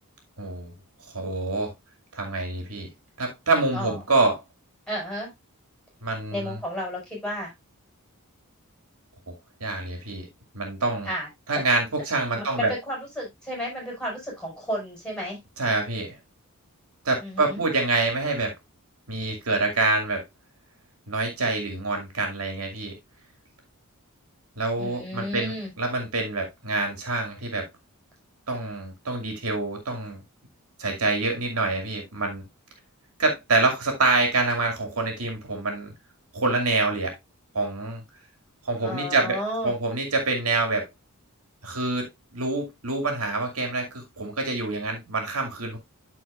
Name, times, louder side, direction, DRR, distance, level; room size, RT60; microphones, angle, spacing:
voice 1, 0.4-0.7 1.1-1.7 2.1-2.9 3.2-4.4 6.0-6.6 9.3-9.4 9.6-10.3 10.5-11.1 11.5-12.7 15.6-16.2 17.0-18.5 19.1-20.2 21.1-22.9 24.6-27.7 28.5-30.2 30.8-32.4 33.2-35.9 36.3-37.1 37.5-38.0 38.6-39.4 39.6-40.9 41.6-45.8, right 3 dB, 70° right, 2.4 m, -26 dB
voice 2, 4.9-5.3 6.3-7.5 11.0-11.3 12.4-15.4 17.2-17.6 24.8-25.7 38.8-39.7, equal, 5° left, 5.0 m, -32 dB
13.0 x 4.5 x 2.4 m
head